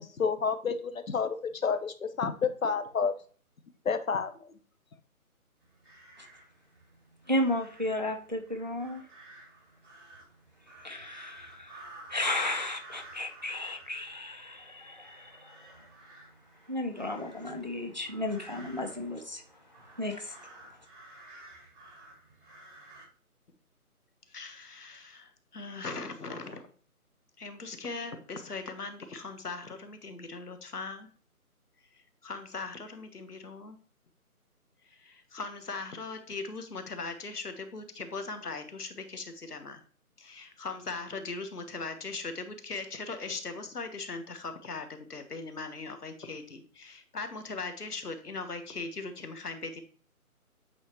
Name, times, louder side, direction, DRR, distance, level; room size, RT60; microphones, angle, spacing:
voice 1, 0.0-3.1 3.8-4.5, left 5 dB, 65° left, 10 dB, 1.0 m, -30 dB
sound 1, 5.6-23.1, right 2 dB, 50° right, 2.3 m, -53 dB
voice 2, 7.3-9.1 10.8-11.8 12.1-15.8 16.7-19.4 19.7-20.9, left 1 dB, 30° right, 4 dB, 0.5 m, -34 dB
voice 3, 24.3-26.7 27.4-31.1 31.9-33.8 34.8-39.8 40.2-49.8, left 3 dB, 90° left, 7 dB, 1.4 m, -39 dB
8.2 x 4.1 x 3.1 m, 0.42 s
figure-of-eight pair, 165°, 45 cm